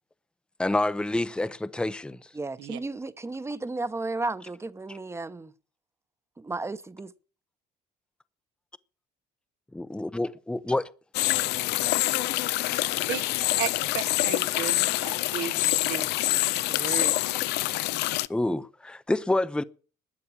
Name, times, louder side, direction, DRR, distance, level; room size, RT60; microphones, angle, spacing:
voice 1, 0.6-2.3 4.9-5.0 9.7-10.9 17.3-17.4 18.3-19.6, left 2 dB, 5° left, 0.6 m, -28 dB
voice 2, 2.3-5.5 6.4-7.1, right 3 dB, 15° right, 0.9 m, -33 dB
sound 1, 11.1-18.3, left 17 dB, 85° left, 0.6 m, -26 dB
voice 3, 13.6-15.5 15.8-16.1 16.4-17.4, right 11 dB, 90° right, 1.6 m, -35 dB
12.5 x 8.4 x 8.5 m
cardioid pair, 110°, 17 cm